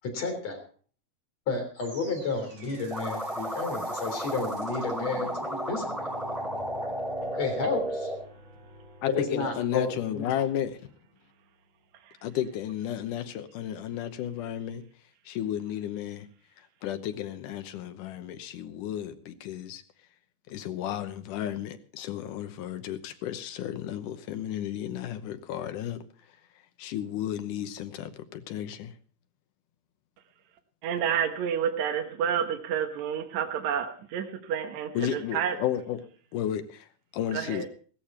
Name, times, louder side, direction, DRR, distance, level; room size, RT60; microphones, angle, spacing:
voice 1, 0.0-0.6 1.5-6.1 7.3-8.1 9.1-10.2, left 4 dB, 55° left, 4.6 m, -31 dB
sound 1, 1.8-10.9, right 1 dB, 40° right, 5.4 m, -46 dB
sound 2, 2.9-8.2, equal, ahead, 2.7 m, -33 dB
voice 2, 9.0-10.9 12.2-14.8 15.3-16.3 16.8-19.8 20.5-26.0 26.8-29.0 34.9-36.0 36.3-36.9 37.1-37.7, left 10 dB, 80° left, 2.5 m, -33 dB
voice 3, 30.8-35.6 37.3-37.7, right 8 dB, 65° right, 2.4 m, -29 dB
16.0 x 14.0 x 4.3 m
omnidirectional pair, 3.7 m